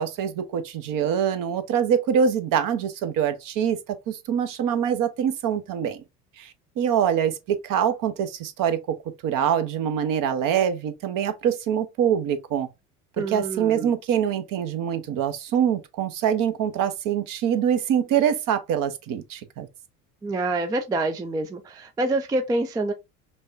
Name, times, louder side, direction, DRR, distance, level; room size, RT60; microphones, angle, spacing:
voice 1, 0.0-6.0 6.4-8.8 9.2-12.7 13.2-19.7, right 8 dB, 45° right, 0.9 m, -24 dB
voice 2, 13.2-13.9 20.2-22.9, right 2 dB, 10° right, 0.4 m, -26 dB
5.3 x 2.3 x 2.5 m
hypercardioid pair, 65°, 44 cm